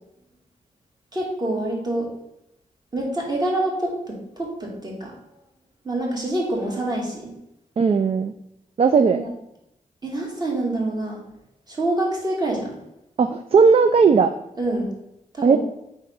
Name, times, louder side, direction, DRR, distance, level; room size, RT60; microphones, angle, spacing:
voice 1, 1.1-2.1 2.9-5.1 5.8-7.3 9.1-9.3 10.0-11.2 11.7-12.8 14.6-14.9 15.3-15.6, right 1 dB, 30° right, -2 dB, 2.0 m, -26 dB
voice 2, 7.8-8.3 8.8-9.2 13.2-14.3 15.4-15.6, right 5 dB, 45° right, 9 dB, 0.4 m, -16 dB
4.6 x 3.9 x 5.3 m, 0.85 s
wide cardioid pair, 95°, 14 cm